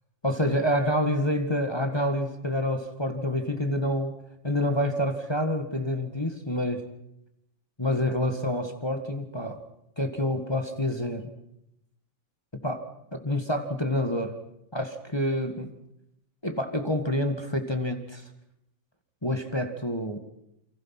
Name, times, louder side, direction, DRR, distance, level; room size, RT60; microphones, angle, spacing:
voice 1, 0.2-4.2 4.4-6.8 7.8-9.6 10.0-11.3 12.6-12.8 13.1-14.4 14.7-15.7 16.4-18.2 19.2-20.2, left 1 dB, 15° left, 5 dB, 0.8 m, -27 dB
28.5 x 25.0 x 6.0 m, 0.80 s
omnidirectional pair, 3.9 m